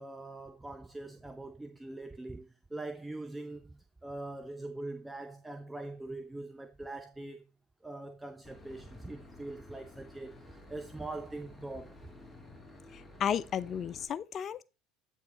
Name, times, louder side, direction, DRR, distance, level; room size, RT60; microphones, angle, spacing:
voice 1, 0.0-7.4 7.8-12.0, right 2 dB, 10° right, 0.8 m, -43 dB
Boat Water vehicle / Engine, 8.4-14.1, left 1 dB, 15° left, 1.6 m, -52 dB
voice 2, 12.9-14.6, left 8 dB, 40° left, 0.4 m, -33 dB
8.5 x 4.6 x 4.3 m
hypercardioid pair, 75°, 0 cm